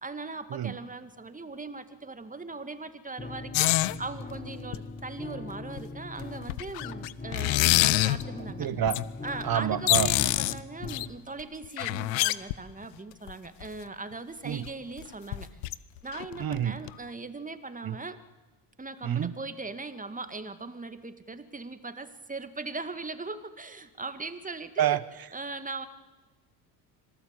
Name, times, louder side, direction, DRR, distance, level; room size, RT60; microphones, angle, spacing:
voice 1, 0.0-8.7 9.2-15.5 16.0-18.2 18.8-25.0 25.3-25.9, right 3 dB, 15° right, 10 dB, 2.1 m, -39 dB
sound 1, 3.2-11.2, left 2 dB, 15° left, 2.0 m, -41 dB
sound 2, 3.5-4.0 4.7-4.8 5.8-5.9 6.2-8.2 8.9-9.0 9.4-9.5 9.7-11.1 11.6-12.8 13.3-13.4 13.6-13.7 14.7-14.8 15.0-15.1 15.3-15.7 16.1-16.6 16.9-17.0, left 19 dB, 90° left, 0.9 m, -26 dB
voice 2, 8.6-9.0 9.4-10.1 14.4-14.6 16.4-16.8 17.8-18.0 19.0-19.3 24.8-25.0, right 10 dB, 45° right, 16 dB, 1.4 m, -27 dB
26.0 x 18.5 x 8.3 m, 1.2 s
supercardioid pair, 80°, 49 cm